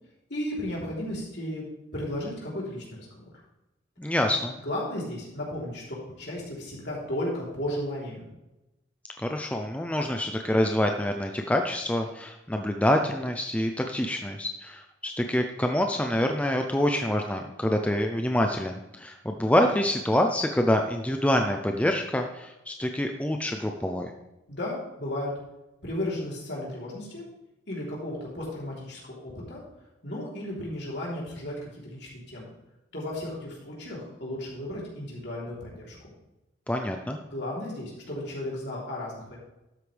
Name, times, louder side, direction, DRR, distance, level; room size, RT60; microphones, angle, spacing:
voice 1, 0.3-1.6 1.9-3.1 4.6-8.3 24.5-25.3 25.8-27.2 27.7-29.6 30.0-32.5 32.9-36.0 37.3-39.4, left 1 dB, 60° left, -4 dB, 3.5 m, -34 dB
voice 2, 4.0-4.5 9.2-24.1 36.7-37.2, left 1 dB, 5° left, 4 dB, 0.5 m, -26 dB
12.5 x 8.0 x 3.4 m, 0.96 s
head